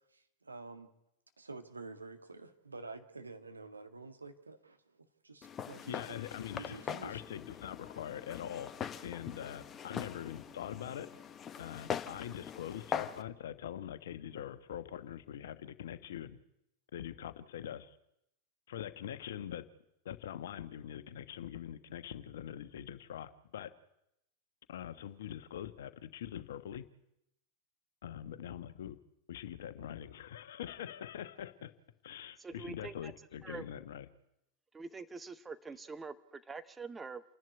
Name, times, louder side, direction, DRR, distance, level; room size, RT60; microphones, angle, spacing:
voice 1, 0.1-0.9 1.4-4.8 5.2-6.2 6.6-7.2, right 3 dB, 80° right, 7 dB, 1.9 m, -49 dB
Walk footsteps, 5.4-13.2, left 8 dB, 25° left, 1.1 m, -42 dB
voice 2, 5.9-8.7 9.0-11.1 11.6-16.4 16.9-18.0 18.7-19.6 20.0-23.7 24.7-26.8 28.0-29.0 29.3-31.7 32.0-34.0, left 10 dB, 60° left, 12 dB, 1.3 m, -43 dB
voice 3, 32.4-33.1 33.4-33.7 34.7-37.2, right 4 dB, 15° right, 11 dB, 1.2 m, -45 dB
28.5 x 11.0 x 9.6 m, 0.82 s
figure-of-eight pair, 90°, 0 cm